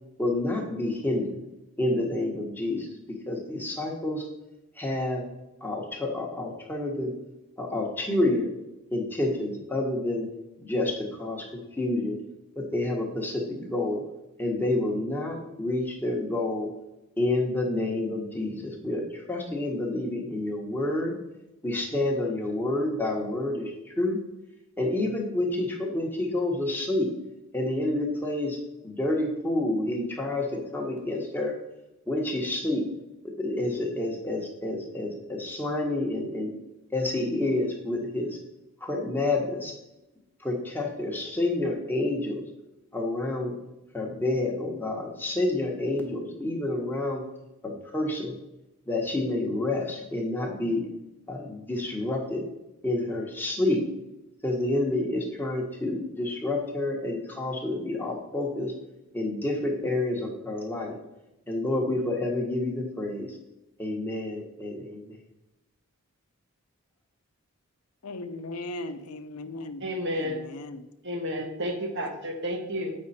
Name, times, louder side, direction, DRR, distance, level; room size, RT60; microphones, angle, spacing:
voice 1, 0.2-1.4 1.8-4.2 4.7-5.2 5.6-7.1 7.6-8.5 8.9-10.3 10.6-12.2 12.5-14.0 14.4-16.7 17.2-21.2 21.6-24.2 24.8-27.1 27.5-28.6 28.8-31.5 32.1-32.8 33.2-36.5 36.9-38.4 38.8-39.7 40.4-42.4 42.9-43.6 43.9-47.2 47.6-48.3 48.9-50.9 51.3-52.4 52.8-53.8 54.4-58.7 59.1-61.0 61.5-63.4 63.8-65.2, left 2 dB, 10° left, 1.2 m, -29 dB
voice 2, 68.0-69.8 70.1-70.9, left 2 dB, 85° left, 0.6 m, -38 dB
voice 3, 69.8-70.4 71.0-72.9, equal, 55° right, 1.3 m, -31 dB
8.1 x 5.3 x 4.2 m
head